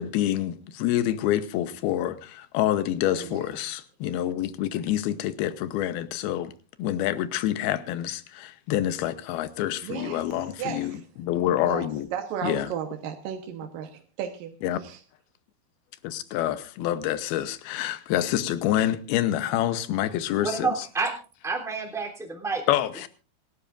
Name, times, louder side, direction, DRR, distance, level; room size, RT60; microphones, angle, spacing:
voice 1, 0.0-6.5 6.8-12.1 12.4-12.7 14.6-14.8 16.0-20.7 22.7-23.1, left 12 dB, 80° left, 2.8 m, -27 dB
voice 2, 3.1-3.4 9.8-10.2 10.6-11.0 11.6-14.6 14.8-15.0, right 8 dB, 70° right, 2.7 m, -34 dB
voice 3, 20.4-21.1 21.4-22.6, right 4 dB, ahead, 2.7 m, -28 dB
27.0 x 12.5 x 2.6 m
omnidirectional pair, 4.5 m